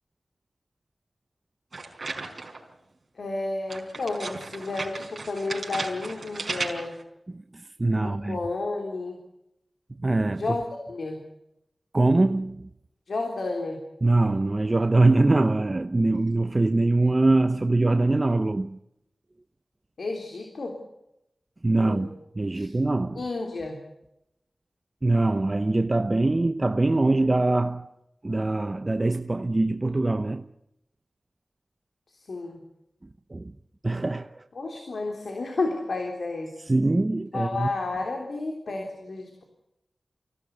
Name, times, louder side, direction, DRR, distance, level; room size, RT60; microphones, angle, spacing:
sound 1, 1.7-2.7 3.7-7.0, right 3 dB, 60° right, 4.7 m, -35 dB
voice 1, 3.2-7.0 8.0-9.2 10.3-11.2 13.1-13.8 20.0-20.8 21.8-22.1 22.5-22.7 23.2-23.8 32.1-32.6 34.6-36.5 37.3-39.4, left 3 dB, 80° left, 3.5 m, -31 dB
voice 2, 7.3-8.4 10.0-10.4 11.9-12.7 14.0-18.8 21.6-23.2 25.0-27.9 28.2-30.4 33.3-33.5 33.8-34.4 36.7-37.7, right 2 dB, 35° right, 0.8 m, -23 dB
24.5 x 16.5 x 9.5 m
wide cardioid pair, 65°, 0 cm